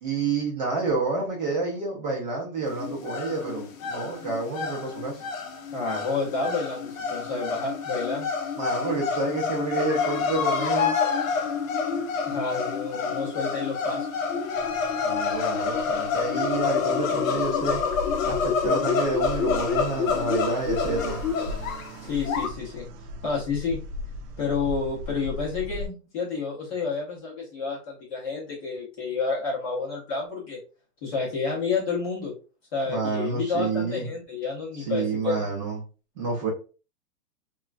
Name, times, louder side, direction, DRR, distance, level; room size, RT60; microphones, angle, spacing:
voice 1, 0.0-5.2 8.6-10.9 15.0-17.8 18.2-21.2 32.9-34.1 34.9-35.8 36.2-36.5, right 3 dB, 30° right, -3 dB, 0.6 m, -29 dB
sound 1, 2.7-22.5, left 6 dB, 60° left, 0.6 m, -28 dB
voice 2, 5.7-8.3 12.3-14.1 22.1-22.9 23.2-23.8 24.4-30.6 31.0-32.3 32.7-35.5, left 4 dB, 20° left, -5 dB, 0.7 m, -30 dB
sound 2, 14.6-25.9, left 1 dB, 80° right, 0.6 m, -38 dB
2.9 x 2.3 x 2.4 m, 0.35 s
hypercardioid pair, 160°, 47 cm